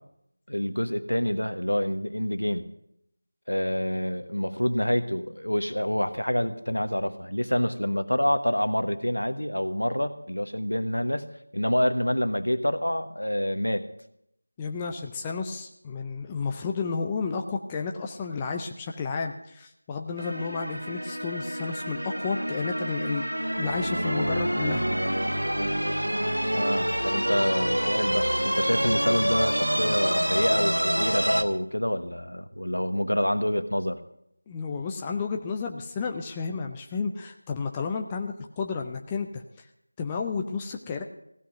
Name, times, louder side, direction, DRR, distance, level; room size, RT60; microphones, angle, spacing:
voice 1, 0.5-2.7 3.5-11.2 11.5-13.8 26.5-34.0, equal, 80° left, 10 dB, 1.3 m, -27 dB
voice 2, 14.6-23.2 23.6-24.8 34.5-39.4 40.0-41.0, left 5 dB, 10° left, 2 dB, 0.5 m, -32 dB
sound 1, 20.2-31.4, equal, 80° right, 1.1 m, -27 dB
16.0 x 6.2 x 9.1 m, 0.76 s
figure-of-eight pair, 170°, 0 cm